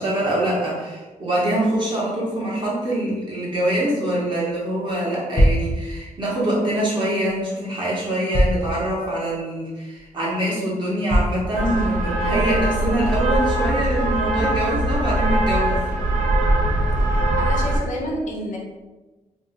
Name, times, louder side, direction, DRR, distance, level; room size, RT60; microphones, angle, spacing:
voice 1, 0.0-15.8, right 1 dB, 35° right, -6 dB, 0.9 m, -24 dB
sound 1, 4.9-5.0 5.3-5.7 7.3-7.4 8.3-8.7 9.3-9.4 10.0-10.1 11.1-11.4, equal, 20° left, 0.6 m, -19 dB
sound 2, 11.5-17.8, right 1 dB, 80° right, 0.6 m, -21 dB
voice 2, 17.4-18.6, equal, 65° left, 0 dB, 0.6 m, -29 dB
2.6 x 2.1 x 3.9 m, 1.2 s
wide cardioid pair, 170°, 14 cm